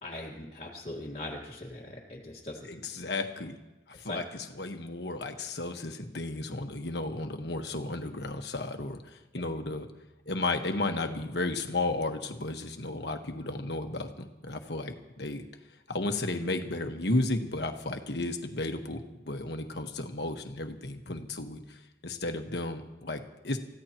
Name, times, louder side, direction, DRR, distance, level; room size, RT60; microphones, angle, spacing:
voice 1, 0.0-2.7 4.0-4.2, left 1 dB, 35° left, -4 dB, 1.7 m, -40 dB
voice 2, 2.6-3.6 3.9-4.2 4.6-9.9 10.3-15.4 15.9-23.6, left 2 dB, 65° left, 5 dB, 1.4 m, -33 dB
29.0 x 15.5 x 3.0 m, 1.1 s
head